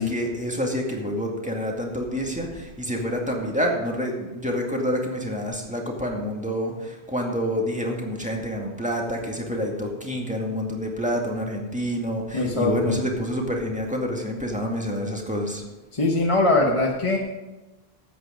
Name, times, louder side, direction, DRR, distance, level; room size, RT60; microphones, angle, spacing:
voice 1, 0.0-15.6, equal, 5° right, 0 dB, 2.0 m, -28 dB
voice 2, 12.3-12.9 15.9-17.2, left 2 dB, 30° left, 0 dB, 1.1 m, -21 dB
13.0 x 8.6 x 5.1 m, 1.1 s
omnidirectional pair, 1.1 m